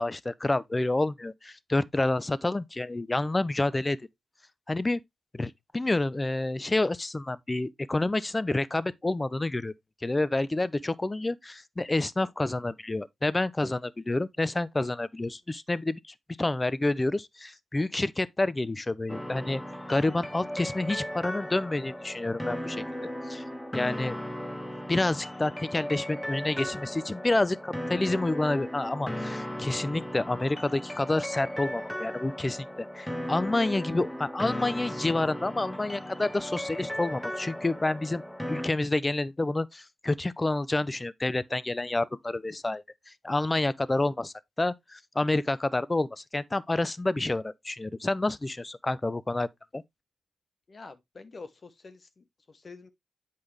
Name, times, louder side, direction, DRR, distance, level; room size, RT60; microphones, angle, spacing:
voice 1, 0.0-4.0 4.7-5.0 5.3-9.7 10.0-19.6 19.9-22.8 23.3-23.4 23.7-24.2 24.9-32.7 32.9-38.2 38.5-49.5 49.7-49.8, left 2 dB, 25° left, 0.6 m, -28 dB
sound 1, 19.1-38.7, equal, 10° left, 1.2 m, -36 dB
voice 2, 50.7-52.9, left 3 dB, 50° left, 1.0 m, -47 dB
8.1 x 5.2 x 3.2 m
supercardioid pair, 45°, 0 cm